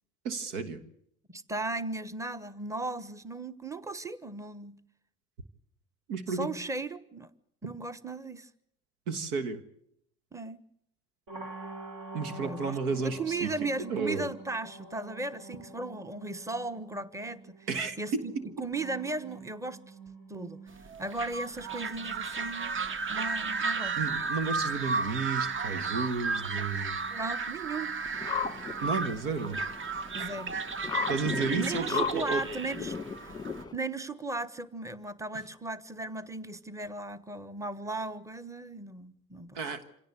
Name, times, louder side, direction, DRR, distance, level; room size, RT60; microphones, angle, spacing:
voice 1, 0.2-0.8 6.1-6.5 9.1-9.6 12.1-14.3 17.7-18.2 24.0-27.0 28.8-29.6 31.1-32.4 39.5-39.8, right 4 dB, 80° right, 1.6 m, -32 dB
voice 2, 1.3-4.8 6.3-7.3 7.6-8.5 10.3-10.6 12.3-17.7 18.0-19.9 20.3-20.6 21.0-22.8 23.1-24.0 27.1-28.0 30.1-30.5 31.5-33.3 33.7-39.6, right 2 dB, 5° right, 1.1 m, -36 dB
sound 1, 11.3-31.1, right 3 dB, 50° right, 3.8 m, -49 dB
sound 2, 20.8-33.6, right 4 dB, 25° right, 0.8 m, -34 dB
sound 3, 28.1-33.7, left 7 dB, 10° left, 1.3 m, -36 dB
26.0 x 17.0 x 8.2 m
hypercardioid pair, 60°, 44 cm